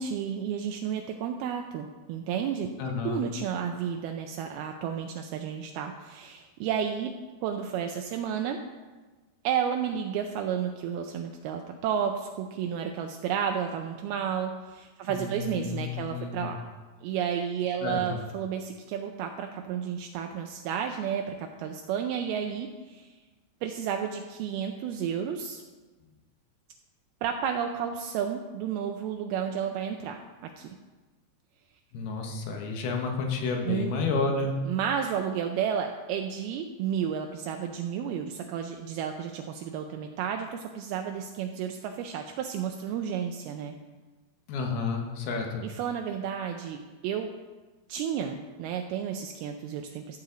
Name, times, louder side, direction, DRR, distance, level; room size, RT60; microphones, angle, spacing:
voice 1, 0.0-2.7 3.0-7.1 7.4-8.6 9.4-16.6 17.0-23.2 23.6-25.6 27.2-30.2 30.6-30.8 33.7-34.0 34.7-43.7 45.6-47.3 47.9-50.2, right 8 dB, 80° right, 4 dB, 2.4 m, -32 dB
voice 2, 2.8-3.2 15.1-16.5 17.8-18.0 31.9-34.5 44.5-45.7, left 4 dB, 75° left, 2 dB, 3.1 m, -31 dB
14.5 x 7.1 x 3.9 m, 1.3 s
omnidirectional pair, 4.6 m